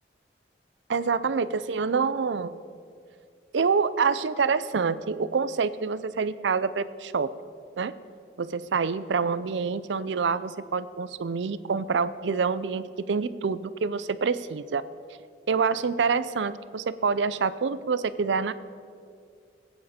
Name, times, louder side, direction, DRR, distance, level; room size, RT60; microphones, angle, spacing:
voice 1, 0.9-2.6 3.5-7.3 7.8-7.9 8.4-14.8 15.5-18.5, right 5 dB, 90° right, 15 dB, 0.5 m, -26 dB
20.0 x 9.0 x 4.3 m, 2.3 s
head